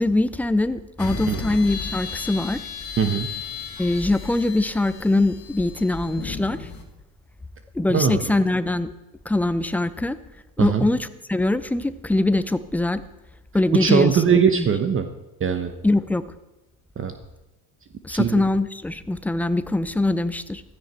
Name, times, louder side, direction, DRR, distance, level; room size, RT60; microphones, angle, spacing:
voice 1, 0.0-2.6 3.8-6.6 7.7-8.9 9.3-10.2 10.6-13.0 13.5-14.2 14.5-14.7 15.8-16.2 18.0-20.6, left 2 dB, 5° left, 13 dB, 0.6 m, -22 dB
sound 1, 1.0-6.8, left 5 dB, 30° left, 2.8 m, -34 dB
voice 2, 3.0-3.3 7.9-8.2 10.6-10.8 13.7-15.1 15.4-15.7 17.0-17.1 18.1-18.4, right 7 dB, 25° right, 8 dB, 1.0 m, -20 dB
15.0 x 13.0 x 4.4 m, 1.0 s
hypercardioid pair, 75°, 48 cm